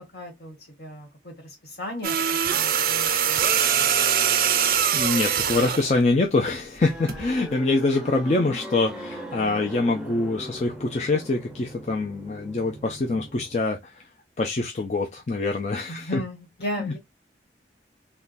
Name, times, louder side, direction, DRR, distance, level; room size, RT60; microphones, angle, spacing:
voice 1, 0.1-2.1 2.4-3.9 15.9-17.0, equal, 70° left, 1.7 m, -36 dB
sound 1, 2.0-5.9 7.1-7.3, right 8 dB, 55° right, 0.4 m, -23 dB
sound 2, 3.1-13.6, equal, 5° right, 0.6 m, -40 dB
voice 2, 4.9-14.0 14.4-16.2 16.8-17.0, left 3 dB, 40° left, 0.4 m, -25 dB
3.6 x 2.2 x 2.5 m
head